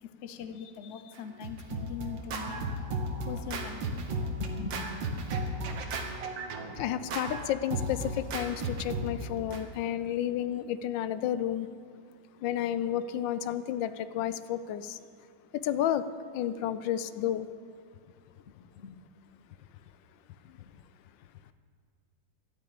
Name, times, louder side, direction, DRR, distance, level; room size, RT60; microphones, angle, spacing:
voice 1, 0.0-2.6 3.2-3.9 4.4-5.6 18.7-19.0 20.6-20.7, left 7 dB, 55° left, 9 dB, 0.9 m, -41 dB
Scratching (performance technique), 1.1-9.6, right 2 dB, 85° right, 1.9 m, -35 dB
voice 2, 6.8-11.7 12.4-15.0 15.5-16.1 16.3-17.5, left 11 dB, 85° left, 13 dB, 1.3 m, -31 dB
12.0 x 9.1 x 8.8 m, 2.2 s
omnidirectional pair, 2.0 m